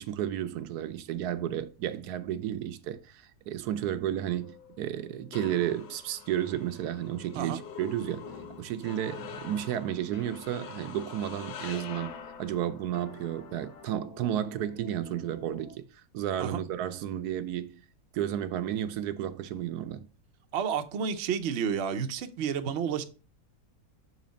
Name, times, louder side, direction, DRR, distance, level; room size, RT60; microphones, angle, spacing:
voice 1, 0.0-17.8 18.1-20.1, right 11 dB, 80° right, 1.1 m, -32 dB
sound 1, 4.4-12.9, left 7 dB, 85° left, 1.3 m, -45 dB
sound 2, 8.3-8.6 10.1-10.4 12.0-12.4 12.9-15.8, left 3 dB, 70° left, 1.4 m, -48 dB
voice 2, 20.5-23.0, right 7 dB, 55° right, 0.7 m, -30 dB
6.2 x 4.1 x 5.0 m
omnidirectional pair, 1.7 m